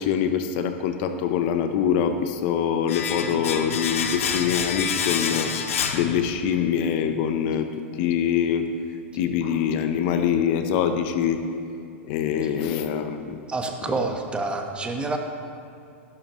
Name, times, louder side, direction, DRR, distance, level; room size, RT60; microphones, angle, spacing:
voice 1, 0.0-5.5 5.9-7.7 8.0-8.7 9.1-11.4 12.1-13.4, left 8 dB, 55° left, 8 dB, 0.8 m, -24 dB
Domestic sounds home sounds, 2.9-6.7 7.0-7.1, left 7 dB, 80° left, 0.9 m, -28 dB
voice 2, 13.5-15.2, right 3 dB, 15° right, 3 dB, 1.3 m, -27 dB
16.5 x 11.5 x 3.1 m, 2.5 s
hypercardioid pair, 110°, 7 cm